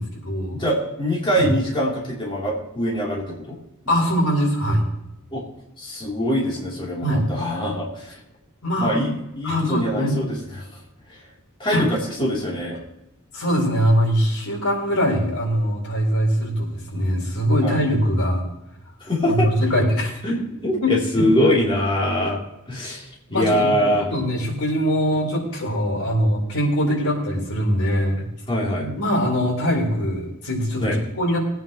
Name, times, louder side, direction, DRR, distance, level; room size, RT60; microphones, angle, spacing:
voice 1, 0.0-0.6 1.3-1.5 3.9-4.8 7.0-7.2 8.6-9.0 9.4-10.2 11.7-11.9 12.2-12.3 13.3-18.5 19.3-20.2 20.8-20.9 23.3-23.8 24.1-28.3 28.8-31.4, equal, 75° left, 0 dB, 4.0 m, -22 dB
voice 2, 0.5-3.6 5.3-5.4 5.8-8.2 8.8-10.7 11.6-12.8 17.6-17.8 19.0-19.8 20.2-22.4 22.7-23.0 23.3-24.1 28.5-28.9 30.8-31.0, equal, 25° left, -4 dB, 2.9 m, -23 dB
21.0 x 9.0 x 2.9 m, 0.87 s
head